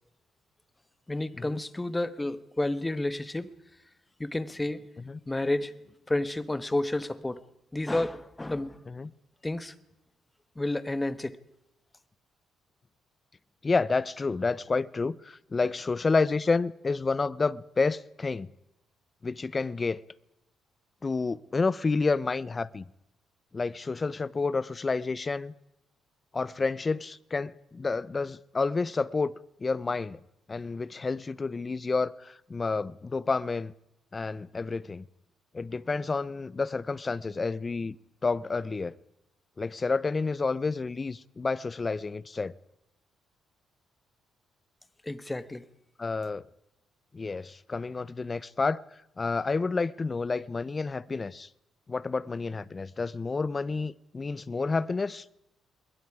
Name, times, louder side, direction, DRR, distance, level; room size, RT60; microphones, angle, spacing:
voice 1, 1.1-3.5 4.2-4.8 5.3-5.7 6.1-7.4 7.7-8.8 9.4-9.7 10.6-11.4 45.1-45.6, left 2 dB, 15° left, 1.2 m, -30 dB
voice 2, 13.6-18.5 19.2-20.0 21.0-22.9 23.5-25.5 26.3-29.3 29.6-30.2 30.5-33.7 34.1-35.1 35.5-38.0 38.2-38.9 39.6-42.5 46.0-46.4 47.1-48.8 49.2-51.5 51.9-55.2, left 4 dB, 30° left, 0.7 m, -29 dB
27.0 x 21.5 x 4.9 m
cardioid pair, 90°, 0 cm